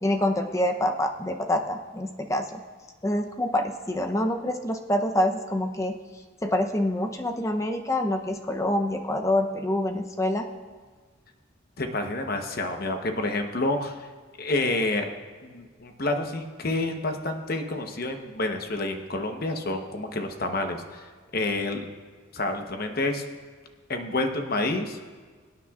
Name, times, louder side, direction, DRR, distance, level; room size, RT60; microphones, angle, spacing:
voice 1, 0.0-2.6 3.0-5.9 6.4-10.5, left 1 dB, 15° left, 4 dB, 0.6 m, -26 dB
voice 2, 11.8-14.1 14.4-15.1 15.4-21.9 22.3-23.2 23.9-25.0, left 2 dB, 45° left, 5 dB, 0.9 m, -29 dB
23.5 x 9.1 x 2.4 m, 1.5 s
head